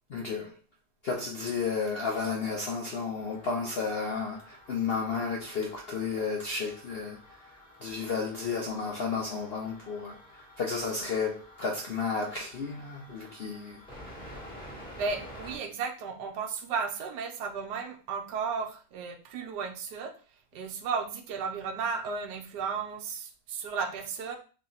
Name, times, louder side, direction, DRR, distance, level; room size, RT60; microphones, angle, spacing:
voice 1, 0.1-0.5 1.0-7.5 7.8-13.8, left 5 dB, 65° left, 0.5 m, -32 dB
sound 1, 3.2-15.6, equal, 5° left, 1.5 m, -50 dB
voice 2, 15.0-24.4, right 5 dB, 80° right, 1.2 m, -34 dB
3.4 x 2.9 x 3.9 m
omnidirectional pair, 1.8 m